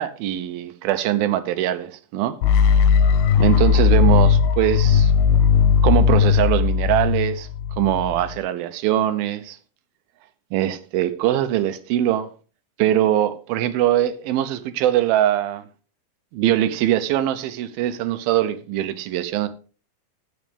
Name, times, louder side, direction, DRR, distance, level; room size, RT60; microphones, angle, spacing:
voice 1, 0.0-2.4 3.4-5.1 5.8-7.5 7.8-9.6 10.5-12.3 12.8-15.6 16.3-19.5, right 12 dB, 80° right, 2.5 m, -22 dB
sound 1, 2.4-8.4, left 6 dB, 85° left, 2.6 m, -17 dB
15.5 x 6.2 x 3.4 m
omnidirectional pair, 4.4 m